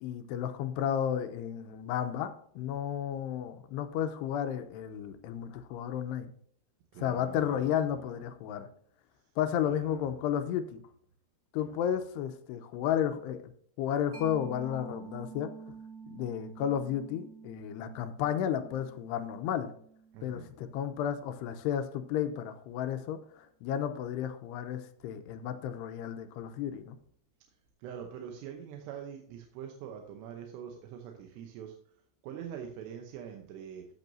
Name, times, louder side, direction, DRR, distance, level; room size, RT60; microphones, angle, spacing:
voice 1, 0.0-6.3 7.0-8.7 9.4-10.8 11.5-13.4 13.8-15.5 16.1-19.7 20.2-27.0, left 9 dB, 85° left, 9 dB, 2.8 m, -33 dB
voice 2, 6.9-7.9 9.7-10.1 11.6-11.8 20.1-20.5 27.8-31.7 32.2-33.9, right 8 dB, 85° right, 3 dB, 3.0 m, -44 dB
Mallet percussion, 14.1-21.4, right 5 dB, 40° right, 2.3 m, -49 dB
16.0 x 6.1 x 2.7 m, 0.62 s
omnidirectional pair, 4.9 m